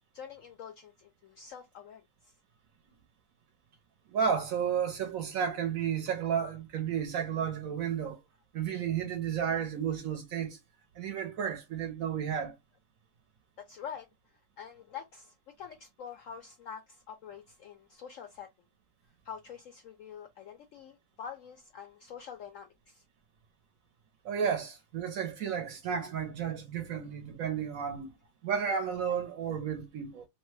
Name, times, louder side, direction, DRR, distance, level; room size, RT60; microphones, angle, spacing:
voice 1, 0.1-2.3 13.6-14.1 14.6-18.5 19.2-23.0 29.1-29.2, left 7 dB, 75° left, 0.7 m, -46 dB
voice 2, 4.1-8.2 8.5-10.6 11.0-12.6 24.2-28.1 28.4-30.2, right 7 dB, 60° right, 1.0 m, -32 dB
2.9 x 2.2 x 3.1 m
omnidirectional pair, 1.8 m